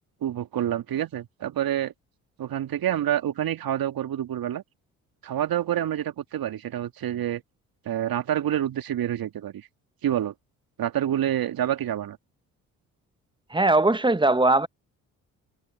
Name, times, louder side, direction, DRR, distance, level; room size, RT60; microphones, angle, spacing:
voice 1, 0.2-1.9 2.4-4.6 5.2-7.4 7.8-9.7 10.0-10.3 10.8-12.2, right 11 dB, 55° right, 2.4 m, -27 dB
voice 2, 13.5-14.7, right 2 dB, 10° right, 1.2 m, -20 dB
hypercardioid pair, 50°, 43 cm